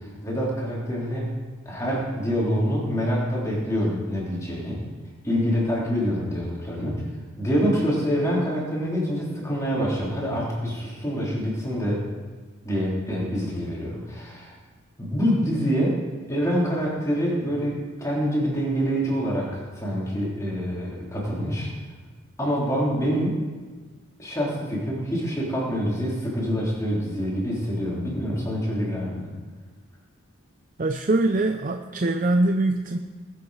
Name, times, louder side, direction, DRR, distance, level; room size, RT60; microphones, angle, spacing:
voice 1, 0.0-1.3 1.7-4.8 5.2-7.0 7.4-12.0 12.6-14.5 15.0-16.0 16.3-21.7 22.4-23.4 24.2-29.3, equal, 15° left, -5 dB, 3.4 m, -26 dB
voice 2, 30.8-33.0, right 2 dB, 40° right, 6 dB, 0.5 m, -23 dB
20.0 x 7.8 x 4.9 m, 1.4 s
head